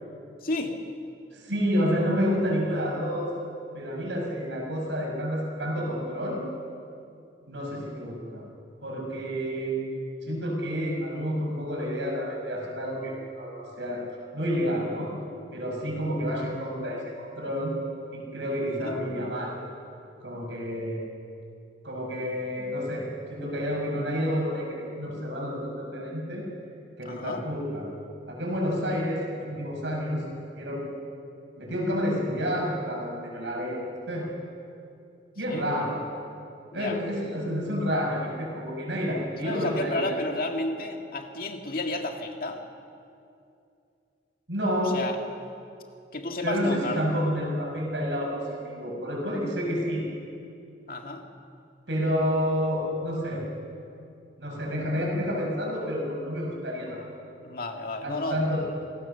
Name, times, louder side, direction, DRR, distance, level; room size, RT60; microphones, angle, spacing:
voice 1, 0.4-0.8 18.6-19.0 27.0-27.4 35.5-35.7 36.7-37.0 39.4-42.6 44.8-45.2 46.1-47.0 50.9-51.2 57.4-58.6, left 2 dB, 55° left, 3 dB, 2.0 m, -32 dB
voice 2, 1.3-3.3 3.7-6.4 7.4-8.4 8.8-14.0 14.3-15.1 15.5-17.7 18.1-19.6 20.2-21.0 21.8-26.4 27.0-27.9 28.3-30.3 30.6-30.9 31.6-34.3 35.4-36.0 36.7-40.0 44.5-45.0 46.4-48.4 48.7-50.0 51.9-53.5 54.4-57.0 58.0-58.6, equal, 75° right, -1 dB, 6.6 m, -29 dB
27.0 x 18.5 x 6.9 m, 2.5 s
head